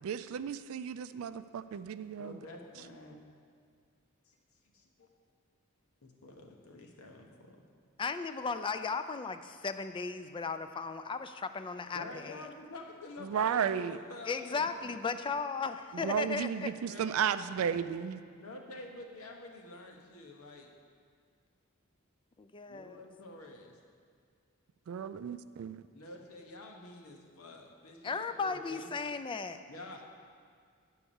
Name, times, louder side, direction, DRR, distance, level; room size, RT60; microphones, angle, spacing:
voice 1, 0.0-2.4 13.2-14.0 15.9-18.2 24.9-25.8, right 8 dB, 70° right, 13 dB, 0.3 m, -34 dB
voice 2, 2.2-3.2 4.3-4.4 4.6-5.1 6.0-7.6 11.9-15.0 16.7-17.8 18.3-20.7 22.7-23.8 25.9-28.9 29.7-30.0, left 2 dB, 85° left, 1 dB, 1.1 m, -48 dB
voice 3, 8.0-12.4 14.3-16.5 22.4-23.0 28.0-29.6, left 4 dB, 25° left, 10 dB, 0.3 m, -36 dB
9.8 x 4.6 x 7.0 m, 2.1 s
head